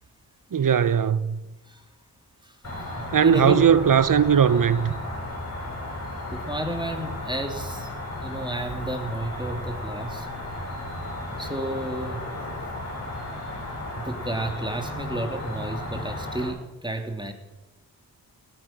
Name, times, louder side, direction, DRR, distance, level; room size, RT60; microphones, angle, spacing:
voice 1, 0.5-1.4 3.1-4.9, right 8 dB, 55° right, 0.9 m, -19 dB
voice 2, 2.4-3.6 6.3-7.9 8.2-10.3 11.4-12.2 13.9-17.3, right 1 dB, 10° right, 3.2 m, -32 dB
Cricket, 2.6-16.5, left 1 dB, 40° left, 6.0 m, -34 dB
18.5 x 9.8 x 6.1 m
cardioid pair, 45°, 40 cm